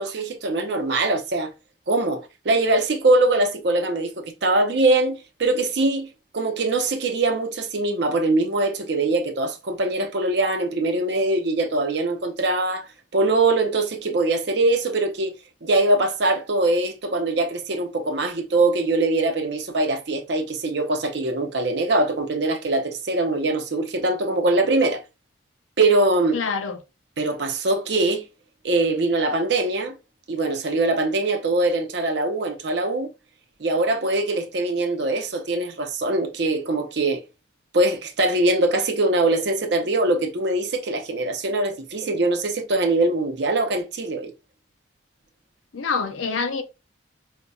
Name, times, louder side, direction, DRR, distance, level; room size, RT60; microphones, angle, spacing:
voice 1, 0.0-1.5 1.9-6.1 6.3-12.9 13.1-25.0 25.8-26.4 27.2-28.3 28.6-30.0 30.3-33.1 33.6-37.2 37.7-44.3, right 2 dB, 60° right, 0.6 m, -22 dB
voice 2, 26.3-26.8 45.7-46.6, left 5 dB, 85° left, 0.6 m, -26 dB
5.3 x 2.2 x 2.3 m
head